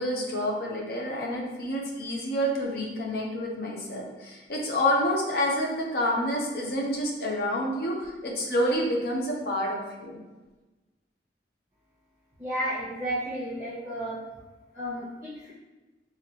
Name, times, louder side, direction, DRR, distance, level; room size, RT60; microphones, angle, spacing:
voice 1, 0.0-10.2, equal, 60° left, -1 dB, 0.7 m, -28 dB
voice 2, 12.4-14.2 14.7-15.5, equal, 20° right, -11 dB, 1.2 m, -32 dB
3.5 x 3.4 x 2.9 m, 1.2 s
head